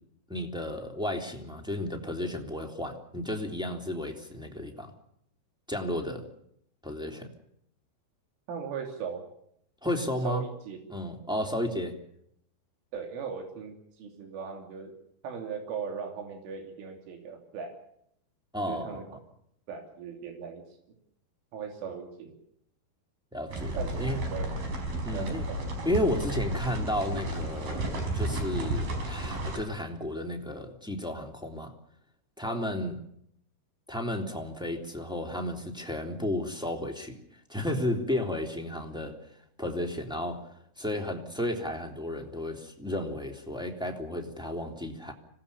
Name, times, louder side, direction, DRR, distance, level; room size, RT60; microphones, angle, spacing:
voice 1, 0.3-4.9 5.7-6.3 6.8-7.3 9.8-10.4 10.9-12.0 18.5-19.2 23.3-24.2 25.0-25.4 25.8-31.7 32.4-33.0 33.9-37.2 37.5-39.2 39.6-40.4 40.8-45.1, left 1 dB, ahead, 1 dB, 2.2 m, -33 dB
voice 2, 8.5-9.2 10.3-10.8 12.9-14.9 15.2-17.8 18.7-19.0 19.7-20.6 21.5-22.4 23.8-24.0 24.3-24.6 25.1-25.7 32.5-32.7, right 6 dB, 90° right, 3 dB, 5.5 m, -38 dB
sound 1, 23.5-29.6, right 1 dB, 50° right, 6.5 m, -32 dB
26.0 x 18.5 x 7.0 m, 0.72 s
omnidirectional pair, 5.5 m